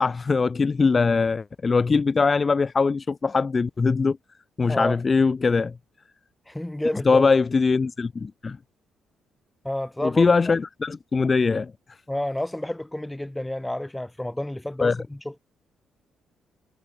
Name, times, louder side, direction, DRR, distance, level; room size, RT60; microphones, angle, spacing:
voice 1, 0.0-4.2 4.6-5.7 7.1-8.6 10.0-11.7 14.8-15.0, left 4 dB, 35° left, 0.8 m, -21 dB
voice 2, 4.7-5.0 6.5-7.3 9.6-10.5 12.1-15.4, left 1 dB, 10° left, 5.0 m, -30 dB
supercardioid pair, 65°, 0 cm